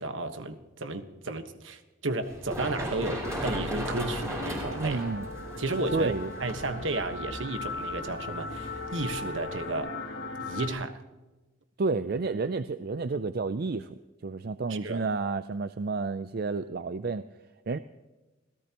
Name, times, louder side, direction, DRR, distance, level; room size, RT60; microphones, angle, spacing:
voice 1, 0.0-5.0 5.6-6.1 6.4-10.0 10.4-11.0 14.7-15.0, right 2 dB, 70° right, 9 dB, 1.4 m, -33 dB
Run, 2.2-9.8, equal, 15° right, 4.9 m, -38 dB
sound 1, 3.2-10.7, left 3 dB, 80° left, 2.5 m, -38 dB
voice 2, 4.8-5.3 5.9-6.3 11.8-17.3 17.7-17.8, right 4 dB, 50° right, 12 dB, 0.5 m, -30 dB
27.0 x 17.5 x 3.0 m, 1.1 s
head